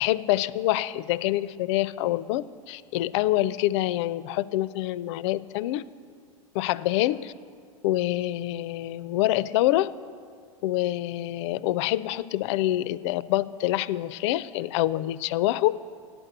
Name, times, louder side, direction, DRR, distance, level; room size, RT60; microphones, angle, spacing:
voice 1, 0.0-5.8 6.5-7.3 7.8-9.9 10.6-15.8, left 15 dB, 55° left, 18 dB, 0.4 m, -26 dB
8.8 x 7.7 x 7.8 m, 2.2 s
hypercardioid pair, 95°, 17 cm